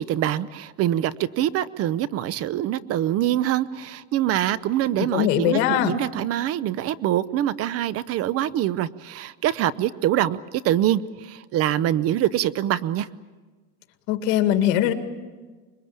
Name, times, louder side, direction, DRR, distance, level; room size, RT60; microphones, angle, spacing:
voice 1, 0.0-13.1, right 12 dB, 45° right, 18 dB, 0.8 m, -24 dB
voice 2, 5.0-5.9 14.1-14.9, left 11 dB, 75° left, 7 dB, 2.2 m, -21 dB
25.5 x 22.0 x 8.8 m, 1.4 s
cardioid pair, 140°, 32 cm